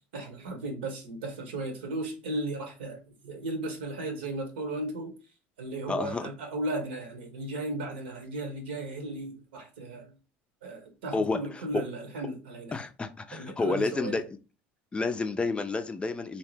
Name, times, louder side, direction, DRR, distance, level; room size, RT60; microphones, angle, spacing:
voice 1, 0.1-5.1 5.6-10.1 10.6-12.8 13.3-14.2, right 2 dB, 85° right, 1.0 m, -35 dB
voice 2, 5.9-6.3 11.1-11.6 12.7-14.2 14.9-16.4, left 3 dB, 20° left, 0.4 m, -30 dB
2.7 x 2.1 x 3.2 m
hypercardioid pair, 80°, 6 cm